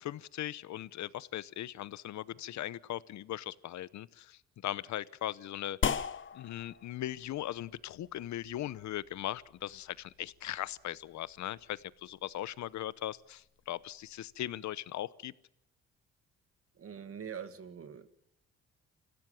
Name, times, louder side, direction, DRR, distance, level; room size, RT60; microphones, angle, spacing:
voice 1, 0.0-6.0 6.3-15.3, left 13 dB, 70° left, 18 dB, 0.9 m, -39 dB
sound 1, 5.8-14.5, left 7 dB, 40° left, 1.0 m, -42 dB
voice 2, 16.7-18.1, right 7 dB, 50° right, 10 dB, 2.0 m, -43 dB
26.0 x 16.5 x 7.2 m, 0.79 s
cardioid pair, 90°, 30 cm